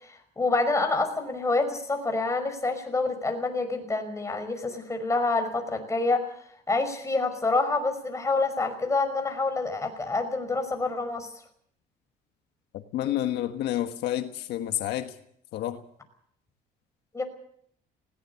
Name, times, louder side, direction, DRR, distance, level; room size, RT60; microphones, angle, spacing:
voice 1, 0.0-6.3 6.7-11.3 17.1-17.2, left 3 dB, 20° left, 5 dB, 5.5 m, -27 dB
voice 2, 12.9-15.1 15.5-15.8, left 12 dB, 80° left, 7 dB, 1.4 m, -29 dB
20.0 x 18.0 x 7.1 m, 0.68 s
cardioid pair, 110°, 17 cm